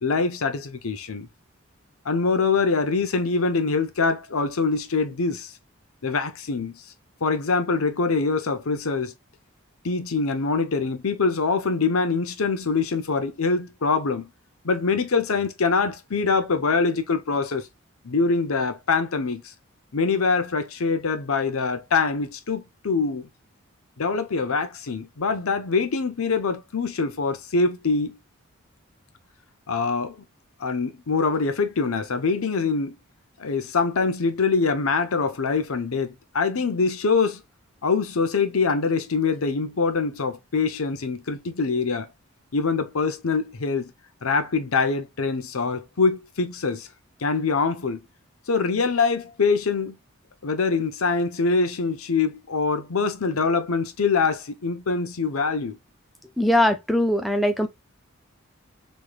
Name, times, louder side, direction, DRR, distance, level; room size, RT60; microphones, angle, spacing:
voice 1, 0.0-1.3 2.0-5.5 6.0-6.8 7.2-9.1 9.8-14.3 14.6-17.7 18.0-19.5 19.9-23.3 24.0-28.2 29.7-30.2 30.6-33.0 33.4-37.4 37.8-42.1 42.5-43.9 44.2-46.9 47.2-48.0 48.5-50.0 50.4-55.8, left 4 dB, 85° left, 0.7 m, -24 dB
voice 2, 56.4-57.7, left 1 dB, ahead, 0.4 m, -21 dB
3.3 x 3.2 x 2.2 m
head